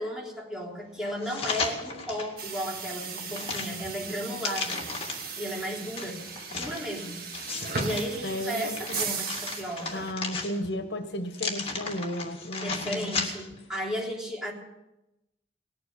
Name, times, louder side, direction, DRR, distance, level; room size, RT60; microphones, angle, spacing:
voice 1, 0.0-4.9 5.4-6.3 6.5-7.2 7.8-10.1 12.6-14.5, equal, 5° right, -3 dB, 3.7 m, -34 dB
sound 1, 1.2-2.3 2.8-5.4 6.0-8.1 8.5-10.8 11.3-13.6 14.0-14.1, left 4 dB, 35° left, 2.2 m, -35 dB
sound 2, 2.4-10.1, right 5 dB, 60° right, 1.8 m, -37 dB
voice 2, 8.2-9.2 9.9-13.1, left 1 dB, 70° left, 8 dB, 1.3 m, -34 dB
19.0 x 8.9 x 8.3 m, 0.92 s
head